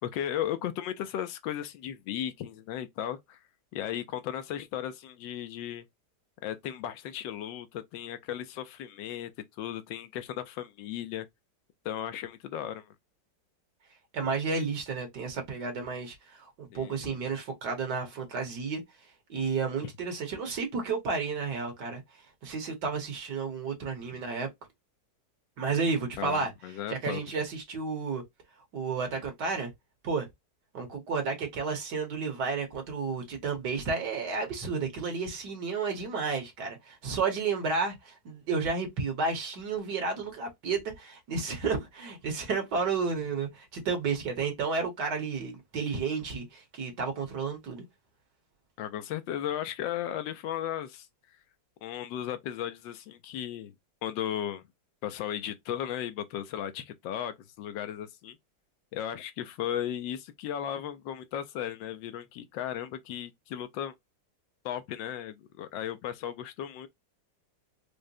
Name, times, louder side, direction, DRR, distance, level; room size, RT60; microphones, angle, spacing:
voice 1, 0.0-3.4 3.7-5.8 6.4-9.3 9.6-11.3 11.8-12.9 16.7-16.9 26.2-27.4 48.8-51.1 51.8-53.7 54.0-54.6 55.0-58.4 58.9-63.9 64.6-66.9, left 10 dB, 85° left, 1.3 m, -35 dB
voice 2, 14.1-18.8 19.3-22.0 22.4-24.5 25.6-26.5 26.9-28.2 28.7-29.7 30.0-30.3 30.7-47.8, right 4 dB, 65° right, 1.7 m, -32 dB
4.9 x 2.1 x 2.6 m
omnidirectional pair, 2.0 m